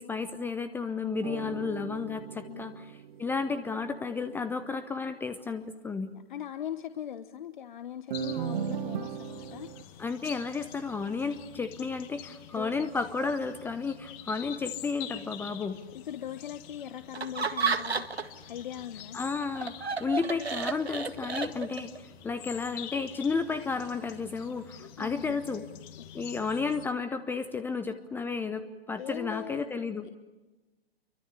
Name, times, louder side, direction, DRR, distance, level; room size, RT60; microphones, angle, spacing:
voice 1, 0.0-2.9 3.2-6.1 10.0-15.8 19.1-25.6 26.1-30.1, left 4 dB, 5° left, 11 dB, 0.8 m, -32 dB
sound 1, 1.2-3.8 8.1-9.8, right 9 dB, 50° right, 1.7 m, -37 dB
voice 2, 6.1-10.0 12.5-12.9 15.9-18.2 18.5-19.2 21.7-21.9 25.0-25.4 29.0-29.7 30.0-30.1, left 10 dB, 50° left, 11 dB, 1.2 m, -40 dB
sound 2, 8.1-26.9, left 11 dB, 30° left, 2.2 m, -47 dB
Laughter, 17.1-18.4 18.8-22.0, right 5 dB, 80° right, 1.9 m, -32 dB
28.5 x 24.0 x 8.4 m, 1.2 s
figure-of-eight pair, 120°, 31 cm